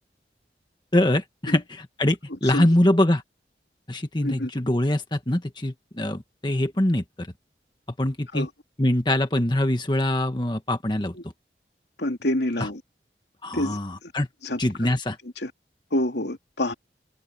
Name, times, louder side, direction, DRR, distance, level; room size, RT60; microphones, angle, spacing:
voice 1, 0.9-3.2 3.9-7.3 8.0-8.5 8.8-11.1 12.6-12.7 13.4-14.3 14.6-15.2, left 1 dB, 25° left, 1.4 m, -23 dB
voice 2, 12.0-12.8 13.5-14.1 14.4-14.6 15.4-15.5 15.9-16.7, left 1 dB, 75° left, 2.9 m, -27 dB
head